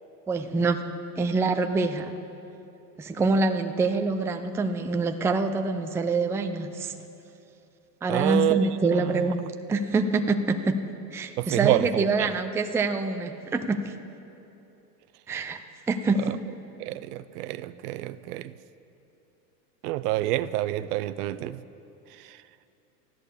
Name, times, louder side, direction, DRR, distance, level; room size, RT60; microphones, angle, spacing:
voice 1, 0.3-0.8 1.2-2.1 3.0-6.9 8.0-10.8 11.1-13.9 15.3-15.6 15.9-16.3, right 3 dB, 5° right, 7 dB, 0.4 m, -25 dB
voice 2, 8.1-9.3 11.4-12.3 16.2-16.4 16.8-18.5 19.8-21.6 22.2-22.4, right 15 dB, 65° right, 14 dB, 0.7 m, -28 dB
14.0 x 10.5 x 8.4 m, 2.8 s
hypercardioid pair, 110°, 49 cm